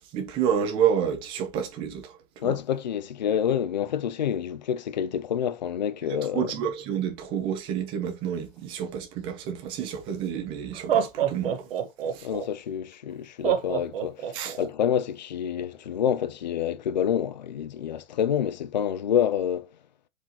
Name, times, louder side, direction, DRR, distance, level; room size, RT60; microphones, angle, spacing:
voice 1, 0.1-2.6 6.3-11.7 12.1-12.3 14.3-14.6, right 8 dB, 15° right, 0.8 m, -29 dB
voice 2, 2.4-6.5 12.2-19.7, left 9 dB, 35° left, 0.4 m, -28 dB
Laughter, 10.0-10.1 10.7-12.4 13.4-14.7, right 9 dB, 45° right, 1.4 m, -26 dB
7.1 x 5.0 x 3.0 m
hypercardioid pair, 170°, 39 cm